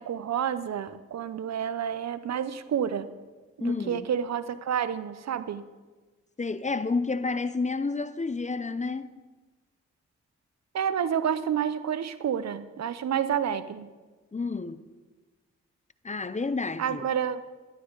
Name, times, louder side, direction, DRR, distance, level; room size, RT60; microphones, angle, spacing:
voice 1, 0.0-3.1 3.6-5.6 10.7-13.9 16.8-17.4, right 8 dB, 60° right, 0.8 m, -29 dB
voice 2, 3.6-4.1 6.4-9.1 14.3-14.8 16.0-17.0, left 4 dB, 25° left, 0.7 m, -30 dB
13.0 x 12.0 x 4.0 m
supercardioid pair, 50°, 30 cm